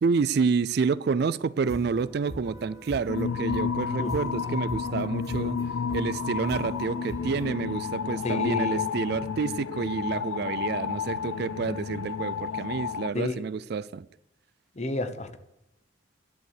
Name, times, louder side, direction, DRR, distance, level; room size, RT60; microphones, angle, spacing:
voice 1, 0.0-5.6 5.9-14.0, right 5 dB, 50° right, 0.3 m, -29 dB
sound 1, 1.6-7.5, equal, 15° right, 1.7 m, -41 dB
sound 2, 3.1-13.1, left 6 dB, 90° left, 0.4 m, -31 dB
voice 2, 8.2-8.8 13.1-13.4 14.8-15.4, left 2 dB, 35° left, 1.0 m, -30 dB
10.5 x 9.5 x 6.6 m
head